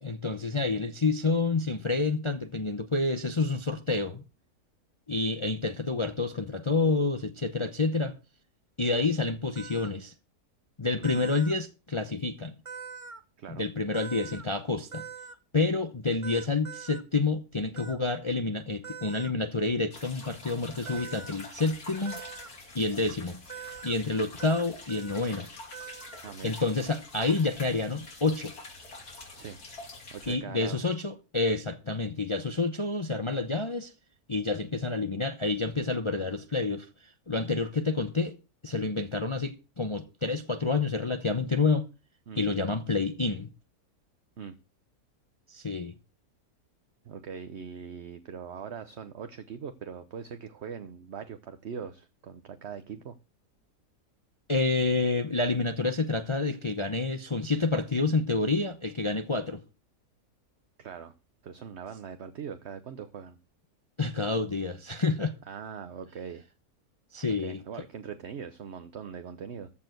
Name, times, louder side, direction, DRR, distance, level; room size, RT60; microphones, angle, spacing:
voice 1, 0.0-4.2 5.1-8.1 8.8-10.1 10.8-12.5 13.5-15.0 15.5-22.1 22.7-23.4 23.8-25.5 26.4-28.5 30.3-33.9 34.3-36.9 37.3-38.3 38.6-41.9 42.4-43.5 45.5-45.9 54.5-59.6 64.0-65.3 67.1-67.6, left 3 dB, 30° left, 0.6 m, -28 dB
sound 1, 9.6-9.9 11.0-11.6 12.7-13.2 13.9-14.5 14.9-15.4 16.2-17.0 17.8-18.0 18.8-19.3 20.9-21.3 22.1-22.5 23.5-24.0 24.4-24.6 24.9-25.2 25.7-26.2, right 6 dB, 25° right, 0.8 m, -43 dB
voice 2, 11.0-11.3 13.4-13.7 26.2-26.6 29.3-29.6 30.1-30.8 42.3-42.5 44.4-44.6 47.0-53.2 60.8-61.1 61.4-63.4 65.5-66.4 67.4-69.7, right 7 dB, 50° right, 1.0 m, -41 dB
sound 2, 19.9-30.4, left 2 dB, 80° left, 3.2 m, -46 dB
14.0 x 4.8 x 7.8 m
omnidirectional pair, 1.6 m